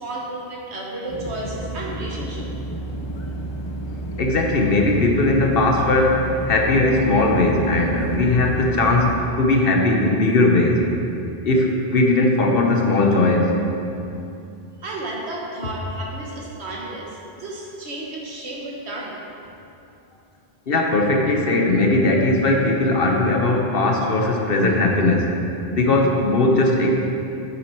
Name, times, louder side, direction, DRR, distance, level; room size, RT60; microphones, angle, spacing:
voice 1, 0.0-2.4 14.8-19.2, right 2 dB, 85° right, -3 dB, 1.6 m, -32 dB
sound 1, 1.1-9.2, right 1 dB, 30° left, 0.6 m, -31 dB
voice 2, 4.2-10.8 11.4-13.5 20.7-25.3 25.7-26.9, left 2 dB, 60° left, 1 dB, 1.1 m, -19 dB
8.3 x 7.2 x 4.5 m, 2.8 s
omnidirectional pair, 1.1 m